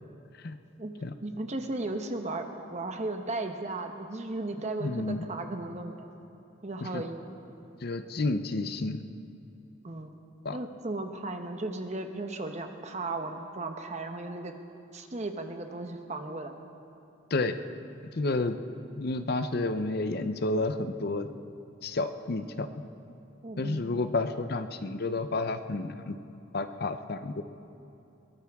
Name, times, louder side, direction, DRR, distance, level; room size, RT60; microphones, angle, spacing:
voice 1, 1.2-6.1 6.6-7.4 9.8-10.1 10.5-14.5 14.9-16.5 23.4-23.8, right 2 dB, 35° right, 5 dB, 0.9 m, -35 dB
voice 2, 4.8-5.2 6.8-7.0 7.8-9.0 10.4-10.6 17.3-17.5 18.2-18.6 18.9-21.3 21.8-22.7 23.6-26.2 26.5-27.4, left 2 dB, 50° left, 10 dB, 0.6 m, -30 dB
22.0 x 17.5 x 3.6 m, 2.9 s
head